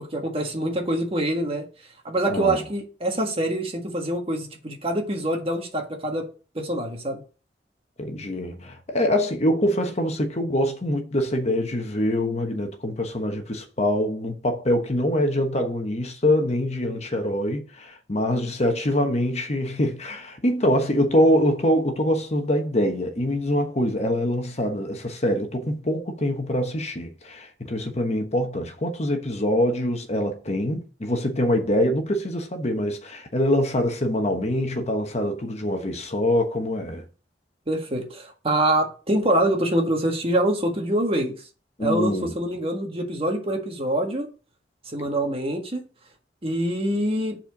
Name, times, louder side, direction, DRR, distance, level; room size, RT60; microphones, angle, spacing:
voice 1, 0.0-1.6 2.0-6.2 6.5-7.2 37.7-41.3 41.8-44.3 44.8-45.8 46.4-47.4, right 1 dB, 35° right, 1.6 m, -25 dB
voice 2, 2.3-2.6 8.0-37.0 41.8-42.3, left 1 dB, 40° left, 1.1 m, -24 dB
7.9 x 4.4 x 5.8 m
head